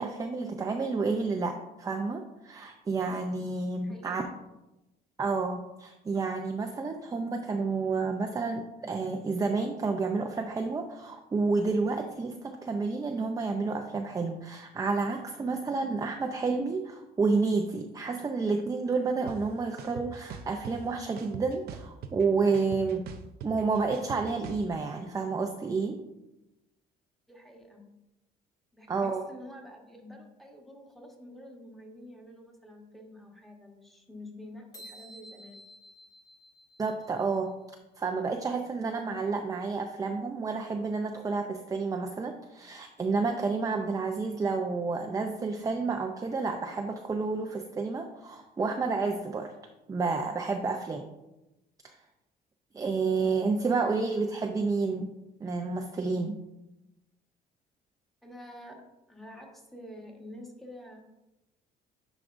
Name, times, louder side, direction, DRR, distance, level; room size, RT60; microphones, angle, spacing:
voice 1, 0.0-4.2 5.2-23.0 23.4-26.0 28.9-29.2 36.8-37.5 38.0-49.5 49.9-51.1 51.8-51.9 52.7-55.1 55.4-56.4, right 4 dB, 20° right, 3 dB, 0.5 m, -30 dB
voice 2, 3.8-4.4 27.3-27.8 28.7-35.6 58.2-58.8 59.1-61.0, left 1 dB, ahead, 0 dB, 1.4 m, -48 dB
sound 1, 19.3-19.4 19.8-20.7 21.2-22.2 22.5-24.6, right 7 dB, 65° right, 0.6 m, -41 dB
sound 2, 34.7-37.4, equal, 20° left, 1.5 m, -51 dB
9.5 x 4.9 x 2.6 m, 0.96 s
cardioid pair, 110°, 17 cm